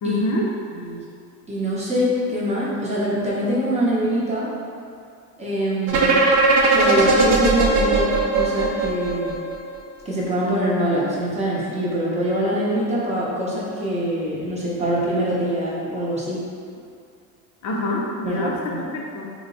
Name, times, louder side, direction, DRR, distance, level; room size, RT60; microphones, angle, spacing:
voice 1, 0.0-0.5 17.6-19.4, left 1 dB, 50° left, -2 dB, 0.5 m, -26 dB
voice 2, 1.5-4.5 5.4-6.2 6.7-9.4 10.0-16.4 18.2-18.8, equal, 20° right, -8 dB, 0.7 m, -24 dB
sound 1, 5.9-9.8, right 3 dB, 50° right, 0.6 m, -18 dB
3.2 x 2.1 x 3.8 m, 2.4 s
cardioid pair, 125°, 37 cm